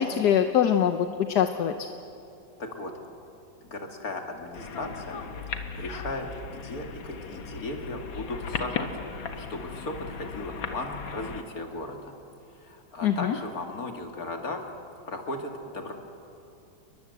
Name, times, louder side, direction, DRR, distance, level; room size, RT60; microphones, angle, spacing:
voice 1, 0.0-1.7 13.0-13.3, left 9 dB, 60° left, 7 dB, 1.4 m, -23 dB
voice 2, 2.6-2.9 3.6-5.2 5.5-12.1 12.5-14.7 15.1-15.9, left 2 dB, 45° left, 3 dB, 2.9 m, -36 dB
sound 1, 4.5-11.4, left 5 dB, 80° left, 2.3 m, -37 dB
29.5 x 21.5 x 8.0 m, 2.8 s
omnidirectional pair, 2.1 m